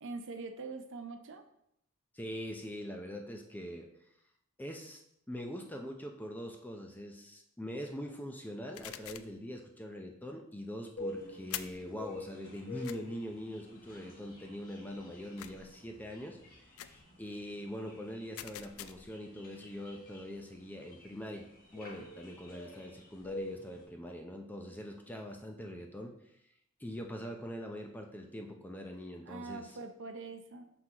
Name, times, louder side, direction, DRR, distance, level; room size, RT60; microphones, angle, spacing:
voice 1, 0.0-1.4 29.3-30.6, right 3 dB, 55° right, 6 dB, 0.6 m, -43 dB
voice 2, 2.1-3.9 4.6-5.0 5.3-16.4 16.9-21.5 21.7-26.1 26.8-29.7, equal, 10° left, 2 dB, 0.5 m, -43 dB
sound 1, 8.7-9.4 11.5-11.9 12.8-13.0 15.4-15.8 16.8-17.0 18.4-19.2, left 12 dB, 65° left, 0.3 m, -44 dB
sound 2, 11.0-23.8, left 2 dB, 40° left, 1.1 m, -48 dB
6.0 x 5.8 x 2.9 m, 0.76 s
head